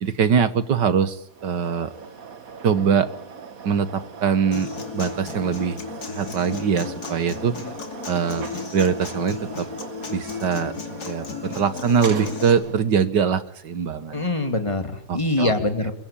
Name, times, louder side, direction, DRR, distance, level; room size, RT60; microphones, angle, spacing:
voice 1, 0.0-1.9 2.6-3.1 3.6-5.8 6.1-7.5 8.1-8.4 8.7-9.7 10.1-10.7 11.1-14.2 15.1-15.5, right 7 dB, 70° right, 13 dB, 2.0 m, -22 dB
sound 1, 1.3-13.0, right 5 dB, 50° right, 1.9 m, -40 dB
Human voice / Acoustic guitar, 4.5-12.5, left 5 dB, 60° left, 3.3 m, -34 dB
voice 2, 14.1-15.9, left 2 dB, 15° left, 6 dB, 3.1 m, -24 dB
28.0 x 22.5 x 8.7 m, 0.68 s
omnidirectional pair, 1.9 m